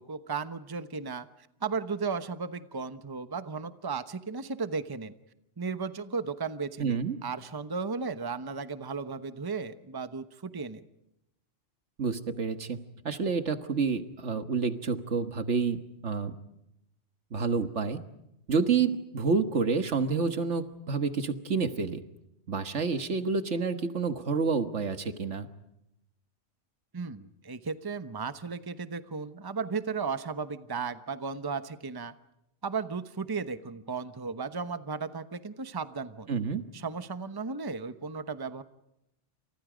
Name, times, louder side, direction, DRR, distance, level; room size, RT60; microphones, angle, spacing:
voice 1, 0.0-5.1 5.6-10.8 26.9-32.1 32.6-36.3 36.7-38.6, right 5 dB, 20° right, 11 dB, 1.0 m, -35 dB
voice 2, 6.8-7.2 12.0-12.8 13.1-16.3 17.3-18.0 18.5-22.0 22.5-25.5 36.3-36.6, right 5 dB, 70° right, 9 dB, 1.8 m, -29 dB
30.0 x 27.5 x 5.1 m, 0.84 s
omnidirectional pair, 1.3 m